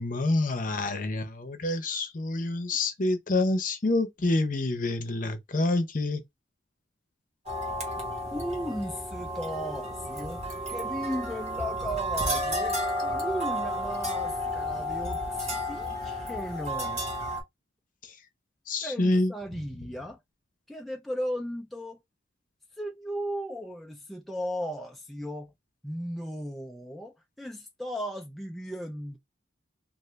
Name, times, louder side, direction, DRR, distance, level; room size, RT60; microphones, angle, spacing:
voice 1, 0.0-6.2 18.7-19.3, left 2 dB, 45° left, 0.8 m, -27 dB
sound 1, 7.5-17.4, equal, 35° right, 1.4 m, -32 dB
voice 2, 8.3-10.4 10.7-17.0 18.8-20.2 20.7-22.0 22.8-25.5 25.8-29.2, equal, ahead, 0.3 m, -36 dB
2.6 x 2.5 x 3.3 m
head